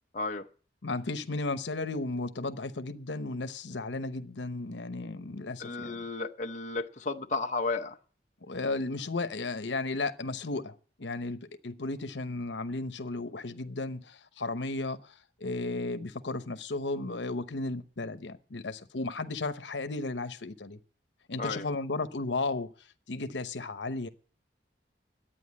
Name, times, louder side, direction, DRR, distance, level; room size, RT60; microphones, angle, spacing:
voice 1, 0.1-0.5 5.6-8.0 21.4-21.7, left 3 dB, 40° left, 0.8 m, -33 dB
voice 2, 0.8-5.9 8.4-20.8 21.3-22.7 23.1-24.1, left 3 dB, 85° left, 1.0 m, -34 dB
11.5 x 9.1 x 8.5 m
head